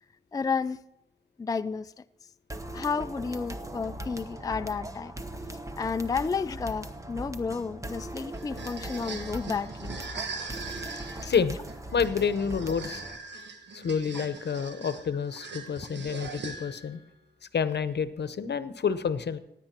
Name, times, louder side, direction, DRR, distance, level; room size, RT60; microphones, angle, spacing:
voice 1, 0.3-0.8 1.4-1.9 2.7-5.1 5.8-9.9 11.2-11.3 14.1-14.2, left 5 dB, 20° left, 0.3 m, -31 dB
sound 1, 2.5-13.2, right 1 dB, 20° right, 1.0 m, -40 dB
sound 2, 8.3-17.0, right 4 dB, 90° right, 1.3 m, -41 dB
voice 2, 11.2-11.6 11.9-13.0 13.7-17.0 17.5-19.4, left 6 dB, 75° left, 0.8 m, -28 dB
16.0 x 9.8 x 4.4 m
wide cardioid pair, 80°, 18 cm